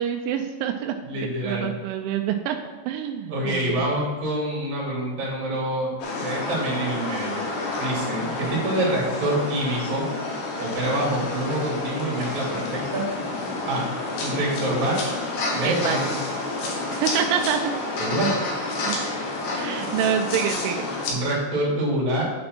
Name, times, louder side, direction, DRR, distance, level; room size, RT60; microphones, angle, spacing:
voice 1, 0.0-0.9 1.4-2.6 2.9-3.8 8.2-8.5 15.6-16.0 16.9-17.7 18.8-19.0 19.6-20.9, right 9 dB, 85° right, 5 dB, 3.0 m, -26 dB
voice 2, 1.0-1.7 3.3-5.9 6.2-7.4 7.8-10.0 10.6-13.1 13.7-13.8 14.2-15.1 15.5-16.1 18.0-18.3 21.1-22.2, right 1 dB, 45° right, -5 dB, 3.3 m, -26 dB
sound 1, 6.0-21.1, left 2 dB, 70° left, 3.4 m, -29 dB
8.6 x 4.3 x 5.9 m, 1.4 s
omnidirectional pair, 5.4 m